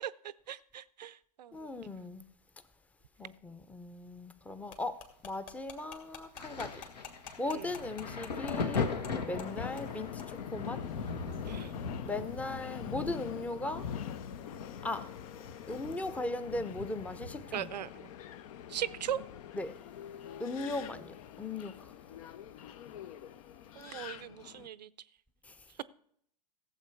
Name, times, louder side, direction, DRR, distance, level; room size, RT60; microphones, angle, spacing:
voice 1, 0.0-1.7 7.5-7.8 11.5-11.7 17.5-18.1 18.7-19.2 23.8-24.9, right 10 dB, 80° right, 0.6 m, -39 dB
voice 2, 1.5-2.2 3.2-6.8 7.4-8.9 9.3-10.8 12.0-13.9 14.8-15.1 15.7-17.7 19.5-19.8 20.4-21.9 25.4-25.5, left 2 dB, 5° left, 0.7 m, -38 dB
sound 1, 4.7-9.1 9.4-9.5 9.8-9.9 10.2-10.3, left 6 dB, 40° left, 2.3 m, -48 dB
Thunder, 6.4-19.7 20.0-21.3 22.1-22.3, left 5 dB, 75° left, 1.4 m, -40 dB
Subway metro underground, 9.4-24.7, left 10 dB, 55° left, 0.6 m, -46 dB
15.5 x 7.6 x 4.6 m
hypercardioid pair, 100°, 21 cm